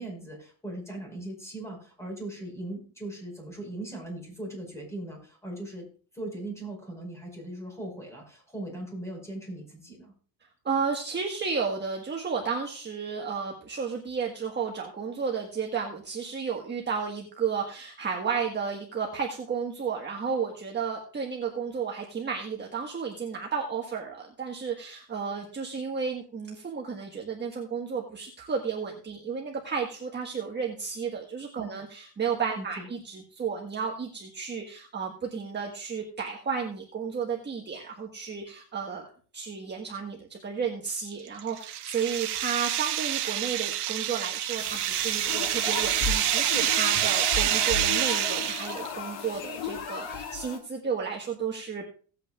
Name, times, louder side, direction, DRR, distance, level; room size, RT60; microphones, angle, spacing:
voice 1, 0.0-5.9 6.1-10.1 31.6-31.8 32.5-32.9, right 1 dB, 5° left, 0 dB, 5.0 m, -39 dB
voice 2, 10.6-39.1 39.3-51.9, right 6 dB, 25° right, 0 dB, 1.5 m, -32 dB
sound 1, 41.1-48.9, right 12 dB, 55° right, 1.4 m, -27 dB
sound 2, 44.6-50.6, left 4 dB, 40° left, 3.9 m, -43 dB
sound 3, 45.3-50.6, left 5 dB, 80° left, 2.0 m, -35 dB
17.5 x 8.5 x 2.4 m, 0.40 s
cardioid pair, 130°, 46 cm